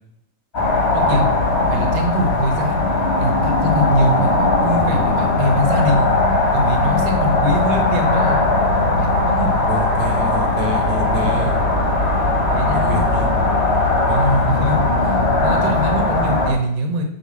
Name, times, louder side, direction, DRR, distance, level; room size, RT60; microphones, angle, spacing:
sound 1, 0.5-16.5, left 2 dB, 50° left, 0.7 m, -18 dB
voice 1, 0.9-1.3 1.7-2.8 3.2-6.1 6.5-8.4 9.0-9.7 11.2-11.5 12.5-13.0 14.0-17.0, equal, 90° right, 3 dB, 2.7 m, -22 dB
Bass guitar, 4.8-11.0, left 6 dB, 90° left, 1.4 m, -36 dB
voice 2, 9.7-11.6 12.7-13.4 14.1-14.5, equal, 60° right, 2 dB, 0.9 m, -28 dB
7.3 x 4.1 x 5.8 m, 0.78 s
omnidirectional pair, 3.6 m